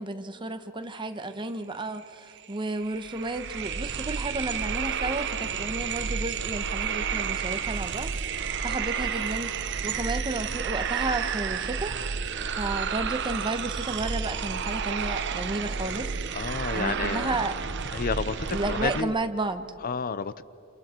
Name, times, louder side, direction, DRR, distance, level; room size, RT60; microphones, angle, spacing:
voice 1, 0.0-8.1 8.6-12.0 12.6-16.1 16.7-17.5 18.5-19.7, right 2 dB, 25° right, 8 dB, 1.2 m, -32 dB
sound 1, 2.0-2.1 2.3-19.0, right 6 dB, 60° right, 0.9 m, -31 dB
voice 2, 16.3-17.3 17.9-18.3 18.6-19.1 19.8-20.4, left 5 dB, 45° left, 15 dB, 0.6 m, -30 dB
30.0 x 28.0 x 4.5 m, 2.7 s
head